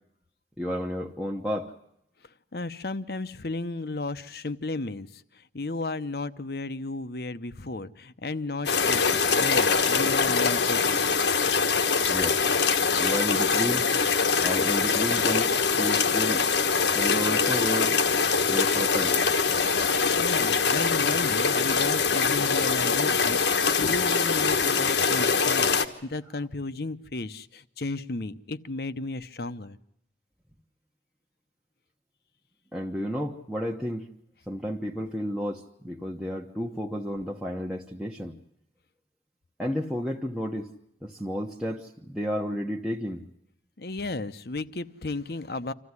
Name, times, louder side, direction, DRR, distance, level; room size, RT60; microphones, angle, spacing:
voice 1, 0.6-1.7 12.1-12.4 13.0-13.9 14.4-16.5 16.9-18.2 18.5-19.2 32.7-34.1 34.5-38.4 39.6-40.7 41.0-43.2, equal, 5° right, -2 dB, 1.0 m, -32 dB
voice 2, 2.5-11.0 20.2-29.8 43.8-45.7, left 2 dB, 60° left, 12 dB, 0.9 m, -34 dB
sound 1, 8.7-25.9, left 5 dB, 85° left, 1.4 m, -23 dB
26.5 x 15.0 x 9.7 m, 0.76 s
head